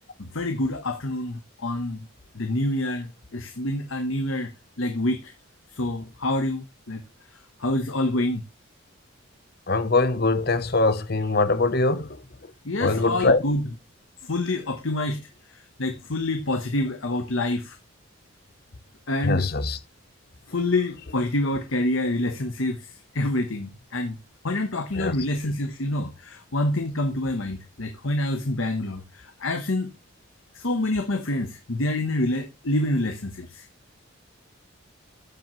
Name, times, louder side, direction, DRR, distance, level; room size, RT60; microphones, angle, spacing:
voice 1, 0.2-2.0 2.3-4.5 4.8-5.3 5.7-7.0 7.6-8.4 12.6-13.6 14.2-15.2 15.8-17.8 19.1-19.5 20.5-24.2 24.4-29.9 30.5-33.6, left 1 dB, 70° left, 1.2 m, -27 dB
voice 2, 9.7-12.2 12.8-13.4 19.2-19.8 24.9-25.2, left 3 dB, 45° left, 0.9 m, -22 dB
13.0 x 7.5 x 3.2 m
head